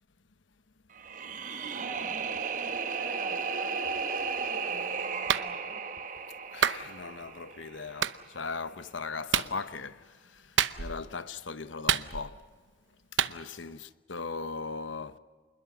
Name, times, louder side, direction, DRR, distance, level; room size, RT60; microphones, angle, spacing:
sound 1, 0.9-8.0, right 5 dB, 45° right, 1.2 m, -35 dB
voice 1, 1.5-5.8, right 1 dB, 5° right, 5.9 m, -48 dB
Clapping, 5.3-5.5 6.6-6.8 8.0-8.2 9.3-9.5 10.6-11.0 11.9-12.4 13.2-13.4, right 9 dB, 80° right, 0.8 m, -27 dB
voice 2, 6.5-12.4 13.1-15.2, left 4 dB, 85° left, 1.0 m, -39 dB
27.5 x 21.0 x 7.3 m
head